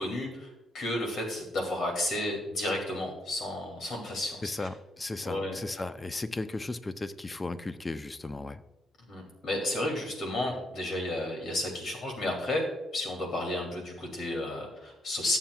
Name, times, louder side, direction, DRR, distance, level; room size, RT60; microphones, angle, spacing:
voice 1, 0.0-4.7 5.2-5.6 9.1-12.7 12.9-15.4, left 1 dB, 65° left, 1 dB, 2.7 m, -32 dB
voice 2, 4.4-8.6, left 2 dB, 20° left, 12 dB, 0.5 m, -36 dB
14.0 x 7.4 x 2.3 m, 0.99 s
cardioid pair, 90°, 0 cm